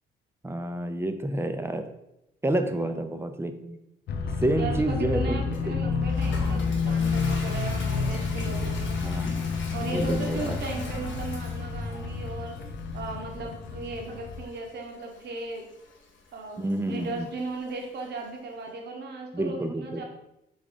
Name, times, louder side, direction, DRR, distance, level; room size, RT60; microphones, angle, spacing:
voice 1, 0.4-1.8 2.4-3.8 4.4-5.4 9.0-9.3 9.9-10.6 16.6-17.3 19.3-20.0, right 1 dB, 10° right, 7 dB, 0.4 m, -29 dB
voice 2, 2.6-3.2 4.6-9.0 9.7-15.7 16.3-20.0, right 3 dB, 55° right, 2 dB, 0.9 m, -37 dB
sound 1, 4.1-14.4, left 4 dB, 55° left, 0.5 m, -29 dB
Toilet flush, 5.5-18.3, left 2 dB, 75° left, 1.0 m, -43 dB
3.6 x 3.6 x 3.7 m, 0.86 s
cardioid pair, 90°, 20 cm